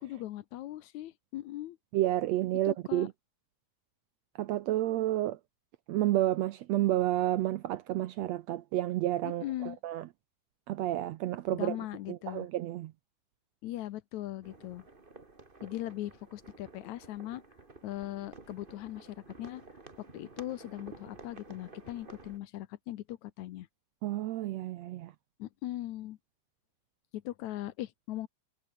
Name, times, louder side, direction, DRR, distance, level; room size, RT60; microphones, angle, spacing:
voice 1, 0.0-1.8 2.7-3.1 9.2-9.8 11.5-12.5 13.6-14.9 15.6-17.4 17.8-19.6 20.1-23.7 25.4-26.2 27.1-28.3, left 14 dB, 75° left, 2.2 m, -39 dB
voice 2, 1.9-3.1 4.4-5.4 5.9-10.1 10.7-11.8 12.1-12.9 24.0-25.1, right 14 dB, 70° right, 1.8 m, -30 dB
sound 1, 14.4-22.4, right 3 dB, 20° right, 2.1 m, -52 dB
omnidirectional pair, 3.4 m